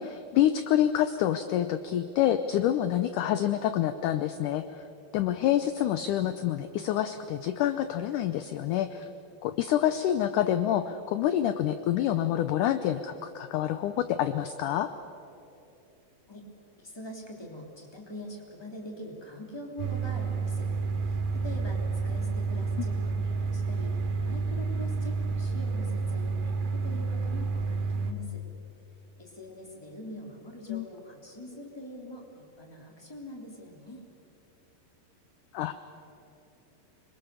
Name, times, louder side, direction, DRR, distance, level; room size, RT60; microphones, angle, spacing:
voice 1, 0.0-4.8 5.1-9.1 9.4-14.9 30.7-30.9 35.5-35.7, left 11 dB, 75° left, 11 dB, 1.9 m, -27 dB
voice 2, 16.8-20.7 21.0-23.9 24.2-28.4 29.2-34.0, left 1 dB, 5° left, 0 dB, 2.8 m, -44 dB
sound 1, 19.8-28.1, right 4 dB, 75° right, 3.5 m, -30 dB
26.5 x 22.5 x 6.9 m, 2.8 s
omnidirectional pair, 4.3 m